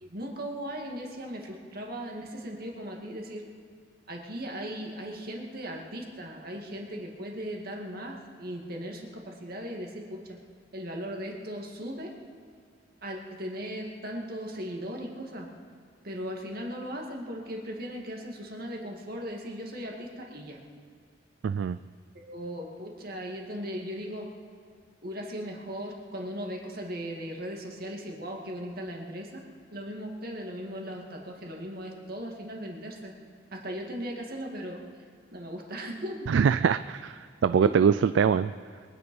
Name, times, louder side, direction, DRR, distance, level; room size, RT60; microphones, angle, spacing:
voice 1, 0.0-3.4 4.1-10.4 10.7-12.1 13.0-15.5 16.0-20.6 22.3-24.3 25.0-29.4 29.7-33.1 33.5-34.8 35.3-36.3 37.6-38.0, equal, 50° right, 0 dB, 2.2 m, -38 dB
voice 2, 21.4-21.8 36.3-37.1 37.4-38.5, right 7 dB, 70° right, 13 dB, 0.3 m, -23 dB
23.0 x 9.8 x 5.4 m, 2.2 s
head